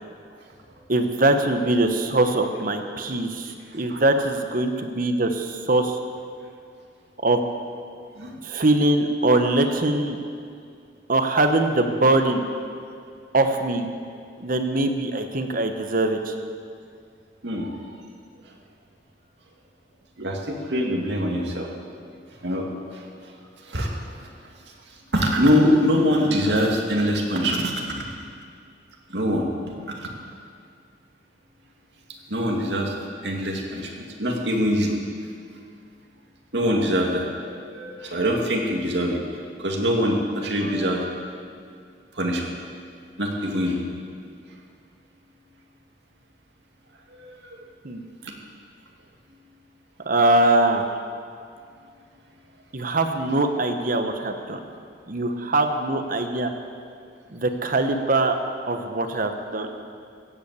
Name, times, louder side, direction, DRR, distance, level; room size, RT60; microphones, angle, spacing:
voice 1, 0.9-6.0 7.2-7.4 8.4-10.2 11.1-12.4 13.3-13.9 14.4-16.3 47.8-48.0 50.0-50.8 52.7-54.6 55.1-56.5 57.3-58.4 58.7-59.7, right 2 dB, 50° right, 6 dB, 1.1 m, -22 dB
voice 2, 20.2-21.7 22.4-22.7 22.9-23.1 23.7-23.9 24.2-24.3 25.1-28.2 29.1-29.4 29.9-30.1 32.3-32.9 33.2-34.9 36.5-39.2 39.6-41.0 42.1-42.5 43.2-43.8 47.1-47.3, equal, 70° right, 0 dB, 2.2 m, -23 dB
15.5 x 8.6 x 8.2 m, 2.3 s
head